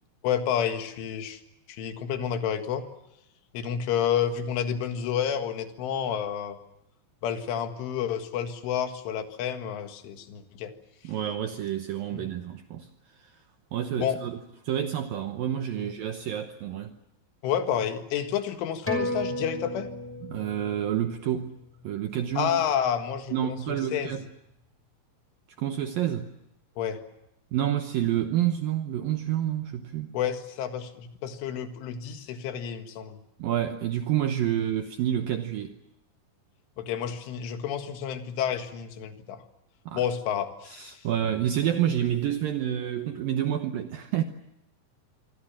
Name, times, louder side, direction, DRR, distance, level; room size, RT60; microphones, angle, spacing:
voice 1, 0.2-1.4 1.7-2.9 3.5-6.6 7.2-10.7 12.1-12.2 14.0-14.2 15.8-15.9 17.4-19.9 22.4-24.2 26.8-27.0 30.1-33.2 36.8-39.4 39.9-41.0, left 9 dB, 90° left, 4.3 m, -30 dB
voice 2, 11.0-12.9 13.2-13.3 13.7-14.4 14.6-17.0 20.2-21.6 21.8-22.6 23.3-24.2 25.6-26.3 27.5-30.1 33.4-35.8 39.9-40.0 40.7-44.2, right 11 dB, 75° right, 2.1 m, -28 dB
sound 1, 18.9-23.8 24.2-24.3, equal, 5° left, 5.3 m, -36 dB
25.5 x 24.5 x 7.4 m
omnidirectional pair, 5.4 m